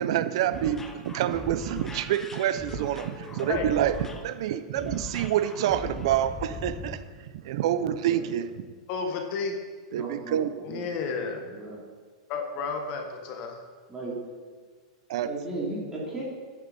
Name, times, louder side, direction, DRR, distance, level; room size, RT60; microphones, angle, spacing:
voice 1, 0.0-8.5 9.9-10.5 15.1-15.3, right 11 dB, 60° right, 12 dB, 0.7 m, -27 dB
sound 1, 0.5-7.0, left 3 dB, 10° left, 0.8 m, -40 dB
voice 2, 8.9-9.5 10.6-11.4 12.3-13.6, left 5 dB, 40° left, 4 dB, 1.6 m, -31 dB
voice 3, 10.0-10.9 11.4-11.8 13.9-14.1 15.2-16.2, right 2 dB, 15° right, -6 dB, 3.3 m, -36 dB
11.0 x 8.9 x 4.3 m, 1.5 s
supercardioid pair, 150°, 3 cm